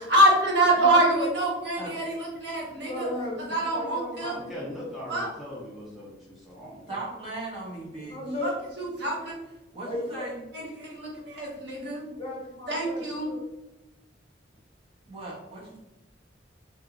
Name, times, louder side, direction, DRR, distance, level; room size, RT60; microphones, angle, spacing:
voice 1, 0.0-3.1 3.5-4.3 5.1-5.3 8.4-8.5 8.8-9.3 10.5-12.0 12.7-13.3, right 1 dB, 65° right, -3 dB, 0.9 m, -25 dB
voice 2, 0.8-1.3 2.7-4.9 8.1-8.5 9.8-10.3 12.1-13.4, left 1 dB, 30° left, -3 dB, 0.8 m, -35 dB
voice 3, 4.2-7.0, equal, ahead, -7 dB, 0.5 m, -40 dB
voice 4, 6.9-8.2 9.7-10.4 15.1-15.8, right 2 dB, 30° right, -5 dB, 0.9 m, -38 dB
2.9 x 2.5 x 2.4 m, 0.98 s
head